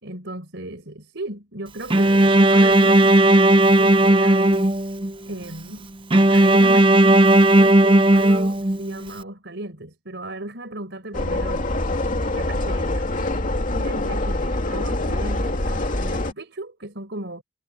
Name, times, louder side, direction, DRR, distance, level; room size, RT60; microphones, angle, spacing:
voice 1, 0.0-4.7 5.2-5.9 6.3-11.7 12.3-17.4, right 1 dB, 65° right, 4.8 m, -35 dB
Bowed string instrument, 1.9-5.1 6.1-9.0, right 1 dB, 25° right, 0.7 m, -15 dB
sound 1, 11.1-16.3, left 2 dB, 40° left, 2.6 m, -25 dB
head